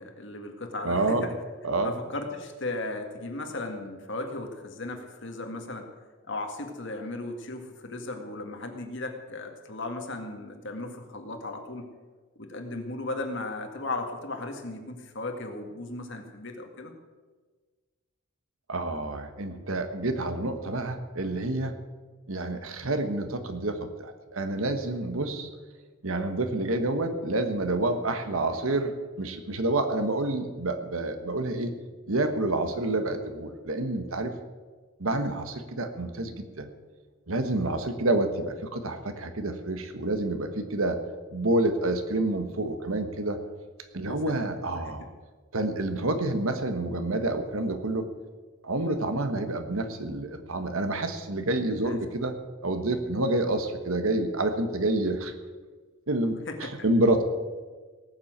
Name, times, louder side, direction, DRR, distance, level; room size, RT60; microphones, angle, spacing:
voice 1, 0.0-1.3 1.8-5.9 6.3-11.9 12.4-16.9 44.0-45.1 51.8-52.0 56.5-56.9, left 2 dB, 55° left, 4 dB, 1.9 m, -36 dB
voice 2, 0.8-1.3 1.6-1.9 18.7-21.7 22.3-25.5 26.0-31.7 32.1-34.3 35.0-36.7 37.3-41.0 41.3-43.4 43.9-45.0 45.5-48.1 48.6-52.3 52.6-55.3 56.1-57.2, right 2 dB, 70° right, 8 dB, 1.4 m, -28 dB
18.0 x 7.3 x 8.1 m, 1.4 s
head